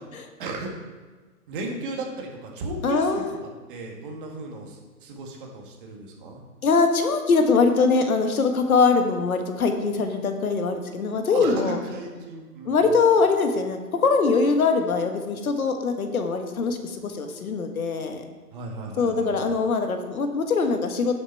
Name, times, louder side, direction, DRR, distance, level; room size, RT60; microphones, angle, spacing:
voice 1, 0.4-0.7 1.5-3.2 3.7-6.4 11.3-12.9 18.5-19.3, right 2 dB, 35° right, 1 dB, 1.8 m, -35 dB
voice 2, 2.8-3.3 6.6-11.8 12.6-18.2 19.0-21.1, left 4 dB, 65° left, 5 dB, 1.5 m, -22 dB
9.7 x 7.1 x 4.5 m, 1.4 s
hypercardioid pair, 155°, 46 cm